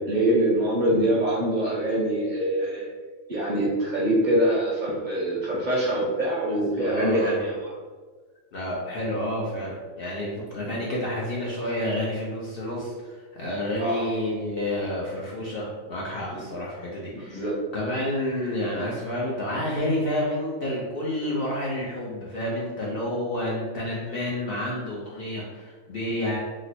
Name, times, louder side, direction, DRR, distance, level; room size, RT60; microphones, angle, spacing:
voice 1, 0.0-2.9 3.3-7.5 10.6-10.7 13.8-14.0 16.3-16.4 17.1-17.5, right 1 dB, 45° right, -6 dB, 0.7 m, -24 dB
voice 2, 6.5-7.5 8.5-17.5 17.7-26.4, left 1 dB, 55° left, -5 dB, 0.7 m, -29 dB
3.0 x 2.0 x 4.1 m, 1.4 s
omnidirectional pair, 1.4 m